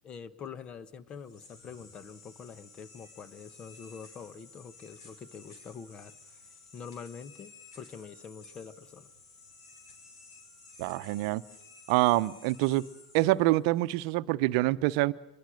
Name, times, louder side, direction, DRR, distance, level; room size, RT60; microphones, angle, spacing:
voice 1, 0.0-6.4 6.7-9.1, left 6 dB, 30° left, 1.5 m, -45 dB
sound 1, 1.1-13.9, left 3 dB, 70° left, 6.0 m, -54 dB
voice 2, 10.8-11.4 11.9-12.8 13.1-15.1, right 18 dB, 55° right, 0.9 m, -26 dB
27.0 x 22.0 x 6.5 m
hypercardioid pair, 105°, 3 cm